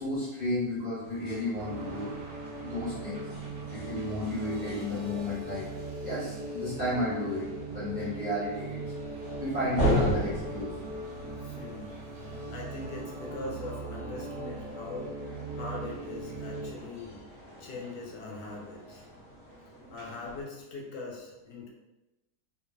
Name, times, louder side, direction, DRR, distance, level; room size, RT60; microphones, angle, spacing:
voice 1, 0.0-2.1 2.7-3.2 3.7-5.7 6.0-7.5 7.7-8.8 9.4-10.7, left 1 dB, 30° right, -12 dB, 0.8 m, -32 dB
sound 1, 1.0-20.4, equal, 35° left, 1.3 m, -38 dB
sound 2, 1.5-16.7, right 2 dB, 70° right, 1.0 m, -39 dB
voice 2, 11.4-15.2 15.5-17.1 17.6-19.1 19.9-21.7, left 3 dB, 85° left, -2 dB, 1.2 m, -41 dB
2.9 x 2.3 x 2.3 m, 1.0 s
omnidirectional pair, 1.9 m